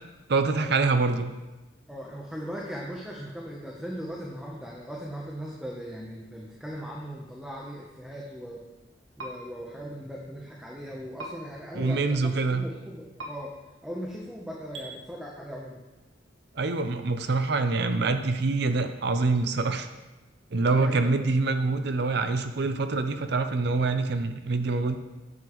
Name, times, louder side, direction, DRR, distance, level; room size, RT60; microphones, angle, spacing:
voice 1, 0.3-1.3 11.7-12.6 16.5-19.9 20.5-25.0, right 3 dB, 60° right, 8 dB, 0.6 m, -25 dB
voice 2, 1.9-8.6 9.2-13.5 13.8-15.8 20.6-21.3, equal, 5° right, -3 dB, 0.8 m, -39 dB
sound 1, 9.2-9.3 11.2-11.3 13.2-13.3 14.7-14.9, right 2 dB, 85° right, 1.5 m, -37 dB
9.5 x 7.0 x 3.1 m, 1.1 s
head